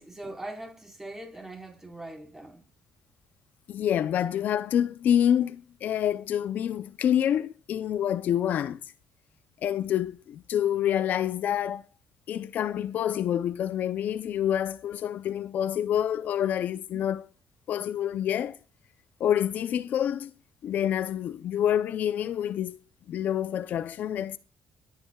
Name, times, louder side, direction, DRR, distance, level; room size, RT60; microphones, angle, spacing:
voice 1, 0.0-2.6 16.9-17.0, right 1 dB, 15° right, 4.3 m, -41 dB
voice 2, 3.7-8.8 9.6-11.8 12.3-17.2 17.7-18.6 19.2-20.3 20.6-22.8 23.1-24.4, left 10 dB, 65° left, 0.6 m, -27 dB
25.5 x 9.6 x 2.3 m
cardioid pair, 95°, 3 cm